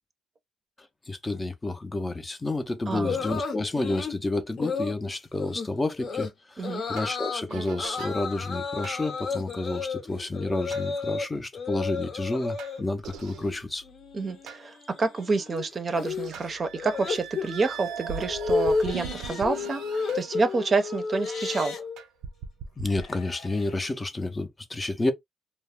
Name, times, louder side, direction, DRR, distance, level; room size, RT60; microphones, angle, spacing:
voice 1, 1.1-13.8 22.8-25.1, left 2 dB, 20° left, 0.5 m, -30 dB
voice 2, 2.9-3.2 6.6-6.8 14.1-21.8, right 4 dB, 40° right, 0.5 m, -28 dB
sound 1, 3.0-4.2 4.6-5.0 5.4-5.7 6.0-6.3 6.6-7.4 7.8-11.3 11.5-12.8 13.1-13.6 13.8-22.0, left 4 dB, 55° left, 0.7 m, -32 dB
sound 2, 7.0-7.2 7.5-8.2 8.8-9.0 10.7-10.9 12.6-14.6 15.2-15.3 15.9-21.7 22.0-23.1, right 6 dB, 85° right, 0.4 m, -41 dB
Livestock farm animals working animals, 18.7-19.4 21.1-21.8 22.8-23.8, left 4 dB, 75° left, 1.1 m, -42 dB
2.3 x 2.0 x 3.4 m
cardioid pair, 90°, 0 cm